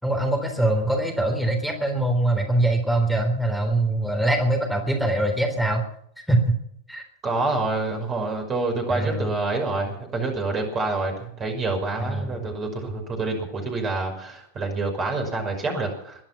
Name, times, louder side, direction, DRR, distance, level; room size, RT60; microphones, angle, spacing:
voice 1, 0.0-5.8 6.3-6.6 6.9-7.1 8.9-9.3 12.0-12.5, right 1 dB, ahead, 2 dB, 3.7 m, -23 dB
voice 2, 7.2-16.2, right 3 dB, 25° right, 3 dB, 5.7 m, -27 dB
22.0 x 10.5 x 6.0 m, 0.68 s
figure-of-eight pair, 90°, 0 cm